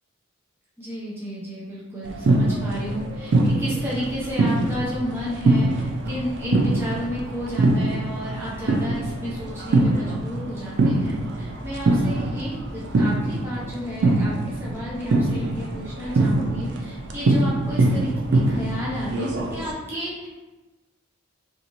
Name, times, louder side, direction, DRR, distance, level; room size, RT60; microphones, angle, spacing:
voice 1, 0.8-20.3, equal, 10° right, -9 dB, 0.6 m, -32 dB
sound 1, 2.0-19.7, right 2 dB, 60° right, 0.4 m, -23 dB
2.6 x 2.5 x 2.9 m, 1.2 s
head